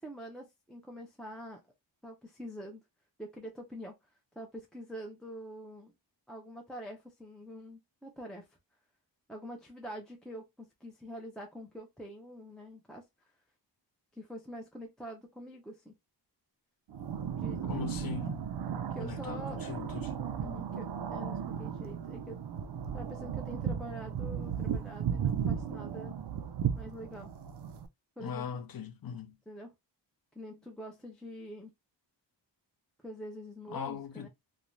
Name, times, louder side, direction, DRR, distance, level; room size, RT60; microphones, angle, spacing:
voice 1, 0.0-1.6 2.0-2.8 3.2-4.0 4.4-5.9 6.3-8.5 9.3-13.0 14.2-16.0 17.4-17.6 18.9-19.6 20.4-22.4 22.9-26.1 26.8-27.3 28.2-28.6 29.5-29.7 30.4-31.7 33.0-34.3, equal, ahead, 0.4 m, -45 dB
sound 1, 16.9-27.9, right 8 dB, 65° right, 0.5 m, -35 dB
voice 2, 17.6-18.5 19.0-20.2 28.2-29.4 33.7-34.3, left 6 dB, 55° left, 0.6 m, -40 dB
2.5 x 2.2 x 3.0 m
wide cardioid pair, 140°, 44 cm